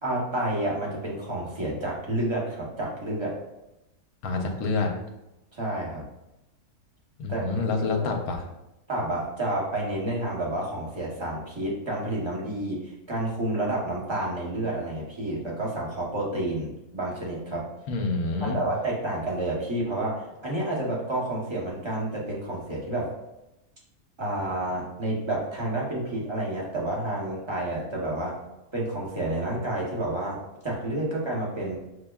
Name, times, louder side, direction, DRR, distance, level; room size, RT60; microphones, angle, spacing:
voice 1, 0.0-3.3 5.5-6.0 7.3-8.2 8.9-17.7 18.4-23.1 24.2-28.4 28.7-31.8, right 1 dB, 25° right, -4 dB, 0.7 m, -30 dB
voice 2, 4.2-4.9 7.2-8.4 17.9-18.6, left 3 dB, 80° left, 3 dB, 1.1 m, -27 dB
6.4 x 2.2 x 2.3 m, 0.93 s
omnidirectional pair, 1.6 m